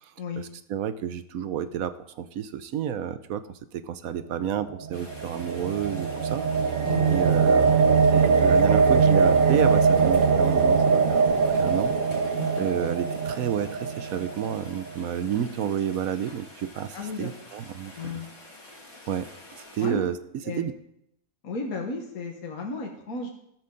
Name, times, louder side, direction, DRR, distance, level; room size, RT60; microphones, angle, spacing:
voice 1, 0.4-3.4 3.7-6.4 7.1-7.8 8.1-18.2 19.1-19.3 19.7-20.2 20.6-20.7, right 9 dB, 70° right, 12 dB, 1.1 m, -30 dB
sound 1, 4.7-14.9, right 5 dB, 50° right, 0.6 m, -22 dB
Rain, 4.9-19.9, left 2 dB, 50° left, 3.0 m, -48 dB
voice 2, 6.8-7.3 7.8-8.0 12.4-12.7 16.9-17.3 17.9-18.3 19.8-20.0 20.4-20.7 21.4-23.3, left 3 dB, 65° left, 1 dB, 1.8 m, -34 dB
13.0 x 12.0 x 3.9 m, 0.77 s
omnidirectional pair, 1.6 m